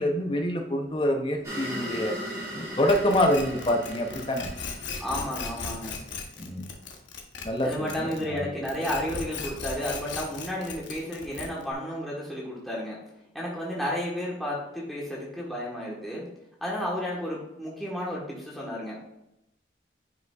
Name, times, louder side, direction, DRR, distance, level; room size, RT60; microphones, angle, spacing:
voice 1, 0.0-2.2 2.5-4.5 6.4-6.7 7.4-8.4, left 1 dB, 25° left, 4 dB, 0.6 m, -26 dB
sound 1, 1.4-6.0, equal, 20° right, 2.1 m, -38 dB
sound 2, 2.9-8.4 8.6-11.7, left 5 dB, 80° left, 0.9 m, -37 dB
voice 2, 5.0-5.9 7.6-13.0 13.3-16.3 16.6-19.0, equal, ahead, -6 dB, 1.2 m, -32 dB
9.4 x 4.9 x 2.3 m, 0.85 s
head